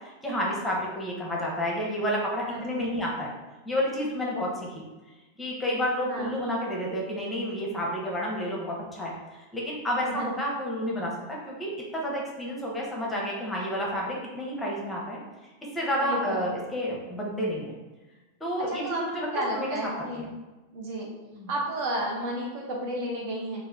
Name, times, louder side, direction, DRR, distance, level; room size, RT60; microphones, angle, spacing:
voice 1, 0.0-3.3 3.6-4.8 5.4-15.2 15.7-17.7 18.4-19.3 19.5-19.7 20.0-20.3 21.3-21.5, equal, 10° left, -3 dB, 0.9 m, -30 dB
voice 2, 2.5-2.9 6.1-6.3 10.0-10.3 16.0-16.5 18.6-20.3 20.7-21.1 21.5-23.6, right 1 dB, 45° right, -1 dB, 0.8 m, -32 dB
3.6 x 2.5 x 3.4 m, 1.1 s
figure-of-eight pair, 90°, 0 cm